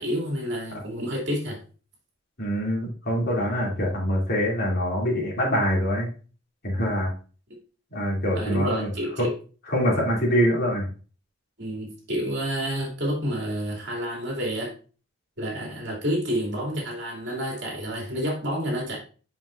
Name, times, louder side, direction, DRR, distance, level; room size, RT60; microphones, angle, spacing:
voice 1, 0.0-1.6 8.3-9.3 11.6-14.7 15.4-19.0, equal, 60° right, -1 dB, 2.6 m, -29 dB
voice 2, 2.4-6.1 6.6-7.1 7.9-8.9 9.2-9.3 9.7-10.9, equal, 50° left, -3 dB, 2.8 m, -24 dB
7.7 x 5.6 x 2.5 m, 0.37 s
head